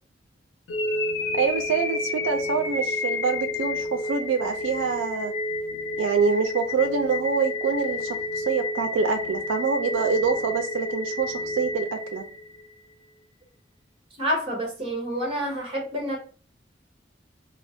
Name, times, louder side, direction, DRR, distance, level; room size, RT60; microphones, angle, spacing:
sound 1, 0.7-12.7, left 2 dB, 70° left, 0.5 m, -30 dB
voice 1, 1.3-5.3 6.0-12.3, right 5 dB, 90° right, 5 dB, 0.4 m, -25 dB
voice 2, 14.2-16.2, equal, 30° right, 0 dB, 0.9 m, -28 dB
2.3 x 2.0 x 2.5 m, 0.40 s
head